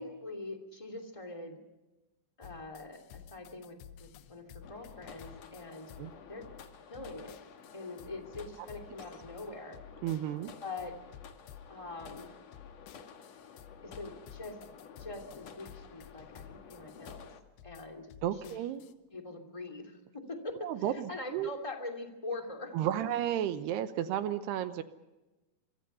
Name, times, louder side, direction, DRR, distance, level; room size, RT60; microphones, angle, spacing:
voice 1, 0.0-1.6 2.4-5.9 6.3-6.5 6.9-7.4 7.7-9.8 10.6-10.9 11.7-12.3 13.8-14.6 15.0-17.3 17.6-18.1 18.4-18.5 19.1-22.8, left 2 dB, 10° left, 3 dB, 1.8 m, -43 dB
sound 1, 2.4-18.9, left 9 dB, 80° left, 3.1 m, -53 dB
sound 2, 4.6-17.4, left 6 dB, 55° left, 2.1 m, -52 dB
voice 2, 10.0-10.5 18.2-18.8 20.6-21.5 22.7-24.8, right 11 dB, 75° right, 11 dB, 3.0 m, -33 dB
26.5 x 23.5 x 5.6 m, 1.1 s
omnidirectional pair, 4.9 m